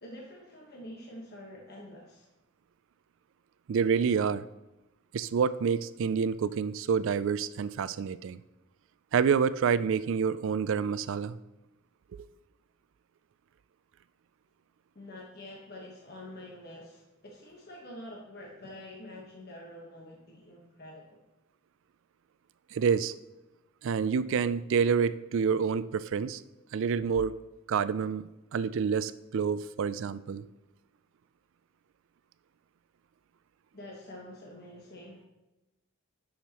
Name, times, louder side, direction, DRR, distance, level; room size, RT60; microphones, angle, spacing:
voice 1, 0.0-2.3 14.9-21.2 33.7-35.3, left 1 dB, 45° left, -2 dB, 1.3 m, -47 dB
voice 2, 3.7-4.5 5.1-8.4 9.1-11.4 12.1-12.3 22.7-23.1 23.8-26.4 26.7-27.4 27.7-30.4, right 6 dB, 60° right, 15 dB, 0.3 m, -28 dB
10.0 x 6.4 x 3.0 m, 1.0 s
head